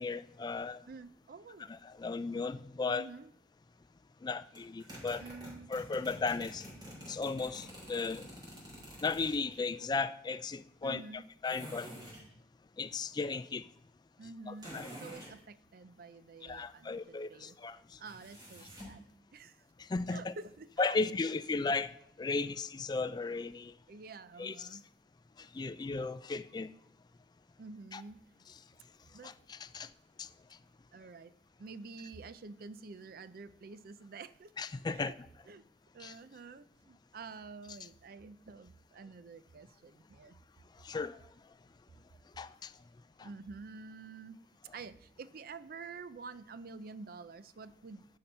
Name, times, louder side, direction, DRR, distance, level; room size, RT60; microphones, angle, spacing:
voice 1, 0.0-0.8 1.7-3.1 4.2-5.3 5.7-6.6 7.1-8.2 9.0-11.9 12.8-13.6 14.5-14.9 16.4-17.8 19.9-20.3 20.8-21.9 22.2-23.7 24.4-24.8 25.5-26.7 27.9-28.0 29.2-29.9 30.2-30.3 34.6-35.1 36.0-36.1 40.8-41.2 42.4-42.7 43.2-43.3, left 4 dB, 25° left, 0.3 m, -35 dB
voice 2, 0.9-1.7 2.9-3.3 5.2-5.7 10.8-11.2 14.2-17.6 18.0-19.0 19.3-19.6 20.1-21.0 23.9-24.8 27.6-28.2 29.1-29.3 30.9-31.3 31.6-34.5 34.9-35.2 35.5-35.6 35.9-40.4 43.2-44.4 44.7-48.1, right 4 dB, 55° right, 0.5 m, -48 dB
sound 1, 4.5-9.6 11.4-12.3 14.6-15.3 18.0-19.0, equal, 25° right, 3.9 m, -48 dB
11.0 x 5.8 x 5.4 m
head